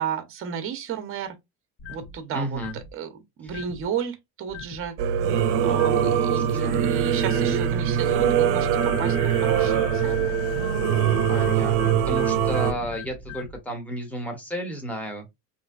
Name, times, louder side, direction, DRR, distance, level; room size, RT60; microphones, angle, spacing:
voice 1, 0.0-1.4 1.9-5.0 5.6-10.3, right 7 dB, 35° right, 0.7 m, -33 dB
sound 1, 1.8-2.1 2.5-2.9 3.5-3.8 4.5-4.9 5.7-6.1 7.2-7.6 8.8-13.6, left 8 dB, 35° left, 0.5 m, -40 dB
voice 2, 2.3-2.8 5.8-6.0 6.3-6.8 7.2-7.6 11.3-15.3, equal, 5° left, 0.8 m, -33 dB
Singing / Musical instrument, 5.0-12.7, right 9 dB, 70° right, 0.6 m, -22 dB
sound 2, 6.6-12.9, left 1 dB, 65° left, 0.8 m, -40 dB
3.0 x 2.6 x 2.3 m
cardioid pair, 140°, 41 cm